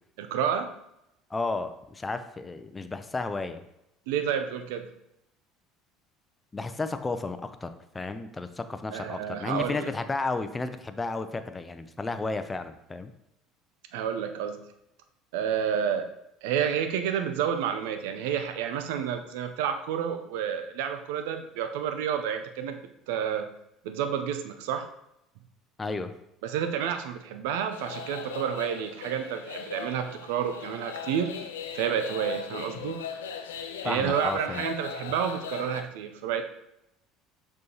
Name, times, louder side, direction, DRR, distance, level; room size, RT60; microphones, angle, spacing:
voice 1, 0.2-0.7 4.1-4.9 8.9-9.9 13.9-14.6 15.3-16.1 16.4-22.8 23.1-23.5 23.8-24.9 26.4-31.3 31.7-33.0 33.8-36.4, right 8 dB, 75° right, 7 dB, 0.6 m, -30 dB
voice 2, 1.3-3.6 6.5-13.1 25.8-26.1 33.8-34.6, left 3 dB, 20° left, 9 dB, 0.6 m, -33 dB
sound 1, 27.7-35.8, left 6 dB, 85° left, 0.4 m, -39 dB
6.1 x 5.6 x 2.9 m, 0.83 s
hypercardioid pair, 65°, 0 cm